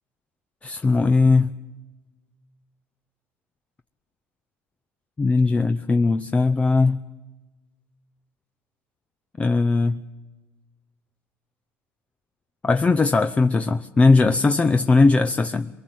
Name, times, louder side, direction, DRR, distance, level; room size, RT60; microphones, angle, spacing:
voice 1, 0.6-1.5 5.2-7.0 9.4-10.0 12.6-15.7, left 3 dB, 25° left, 9 dB, 0.7 m, -19 dB
23.5 x 21.0 x 7.7 m, 1.2 s
supercardioid pair, 90°, 6 cm